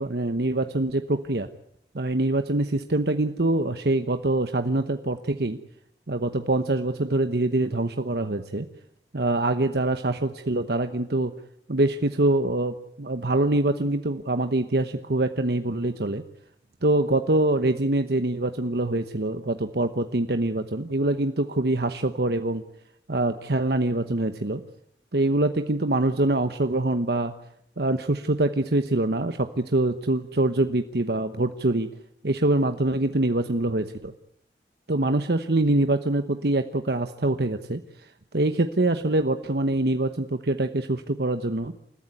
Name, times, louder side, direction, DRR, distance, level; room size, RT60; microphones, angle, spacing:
voice 1, 0.0-1.5 1.9-5.6 6.1-8.7 9.1-11.3 11.7-16.2 16.8-22.6 23.1-24.6 25.1-27.3 27.8-31.9 32.2-34.1 34.9-38.1 38.3-41.7, right 2 dB, 65° right, 8 dB, 1.1 m, -24 dB
29.0 x 14.0 x 9.7 m, 0.72 s
head